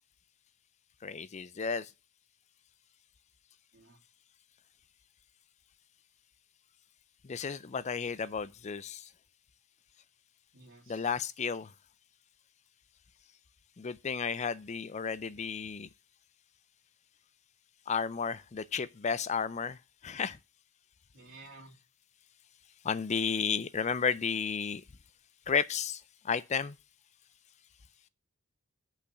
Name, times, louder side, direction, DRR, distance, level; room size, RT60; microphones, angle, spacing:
voice 1, 1.0-1.9 7.2-9.1 10.9-11.7 13.8-15.9 17.9-20.4 22.8-24.8 25.5-26.8, left 6 dB, 30° left, 0.4 m, -33 dB
voice 2, 10.5-11.2 21.1-21.8, right 2 dB, 60° right, 2.7 m, -53 dB
8.5 x 5.7 x 6.0 m
head